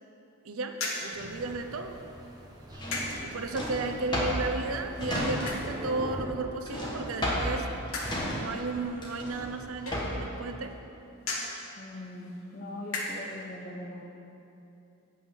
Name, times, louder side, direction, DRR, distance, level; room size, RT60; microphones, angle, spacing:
voice 1, 0.4-2.0 3.2-7.7 8.3-10.7, right 3 dB, 80° right, 6 dB, 0.7 m, -34 dB
sound 1, 0.7-13.5, left 2 dB, 70° left, 1.5 m, -41 dB
Thunder, 1.1-6.2, right 1 dB, 20° right, 0.9 m, -44 dB
Drawer open or close, 2.7-5.8 6.1-10.3, equal, 20° left, 1.6 m, -33 dB
voice 2, 11.8-14.0, left 1 dB, 35° left, -2 dB, 0.8 m, -41 dB
9.1 x 8.1 x 5.4 m, 2.8 s
head